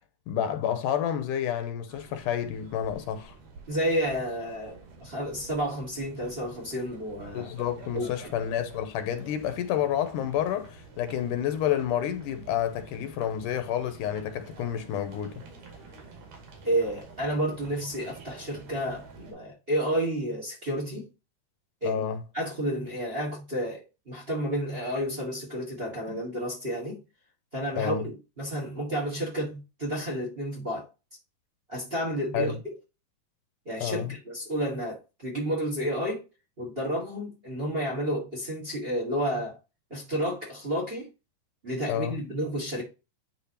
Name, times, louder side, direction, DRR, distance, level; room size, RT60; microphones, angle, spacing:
voice 1, 0.3-3.3 7.3-15.4 21.8-22.2 26.1-26.2 27.8-28.0 32.3-32.6 33.8-34.1 41.9-42.2, left 10 dB, 80° left, 2.2 m, -29 dB
sound 1, 1.9-19.3, right 4 dB, 70° right, 3.6 m, -49 dB
voice 2, 3.7-7.5 7.9-8.3 16.6-21.1 21.8-22.0 22.3-27.0 27.5-30.9 31.7-32.6 33.6-36.3 36.6-39.6 39.9-41.1 41.6-42.8, equal, 25° right, 1.3 m, -31 dB
10.0 x 3.6 x 2.8 m
omnidirectional pair, 3.8 m